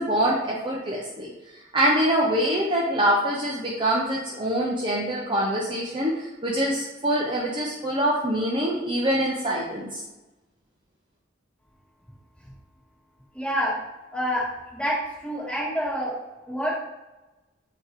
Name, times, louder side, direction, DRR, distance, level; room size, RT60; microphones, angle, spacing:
voice 1, 0.0-1.3 1.7-10.0, right 1 dB, 25° right, -4 dB, 0.7 m, -24 dB
voice 2, 13.3-13.7 14.1-14.4 14.7-15.0 15.2-16.1 16.5-16.8, equal, 5° left, -8 dB, 1.8 m, -27 dB
6.9 x 2.9 x 4.7 m, 1.1 s
head